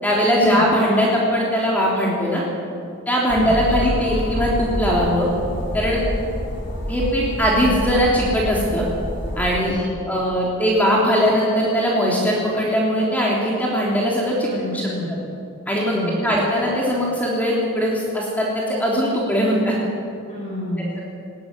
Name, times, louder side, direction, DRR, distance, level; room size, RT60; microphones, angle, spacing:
voice 1, 0.0-2.4 3.0-5.3 5.7-6.0 6.9-8.8 9.4-9.8 10.1-14.8 15.7-16.0 16.2-19.8, equal, 5° left, -4 dB, 3.5 m, -20 dB
sound 1, 3.3-9.6, equal, 50° left, 3.7 m, -28 dB
voice 2, 9.5-10.0 14.4-15.3 15.8-16.3 20.3-20.9, left 1 dB, 30° left, -6 dB, 5.3 m, -28 dB
19.0 x 16.5 x 9.7 m, 2.5 s
head